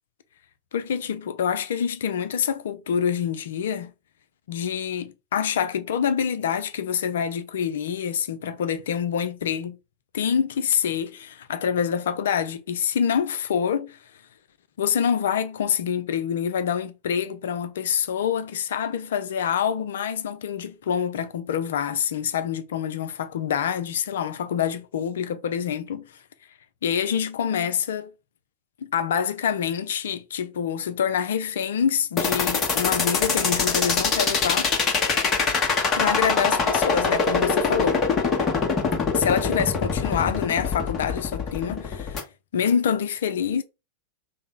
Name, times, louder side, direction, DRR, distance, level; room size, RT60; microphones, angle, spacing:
voice 1, 0.7-3.9 4.5-9.8 10.1-14.0 14.8-26.0 26.8-28.1 28.8-34.7 35.9-38.0 39.1-42.2 42.5-43.6, left 8 dB, 60° left, 0.4 m, -26 dB
sound 1, 32.2-42.2, left 4 dB, 25° left, 0.9 m, -23 dB
3.2 x 2.0 x 3.7 m
figure-of-eight pair, 90°, 0 cm